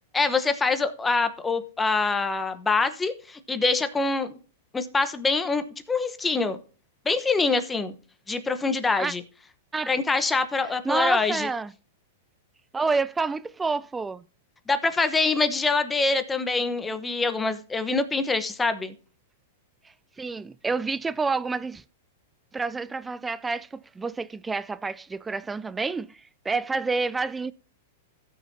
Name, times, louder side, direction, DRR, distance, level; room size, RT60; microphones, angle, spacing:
voice 1, 0.1-4.4 4.7-6.6 7.0-7.9 8.3-9.2 9.9-11.5 14.7-18.9, left 3 dB, 10° left, 1.0 m, -25 dB
voice 2, 10.8-11.7 12.7-14.2 20.2-21.8 22.5-27.5, right 4 dB, 10° right, 0.3 m, -28 dB
16.5 x 6.4 x 2.7 m
hypercardioid pair, 125°, 0 cm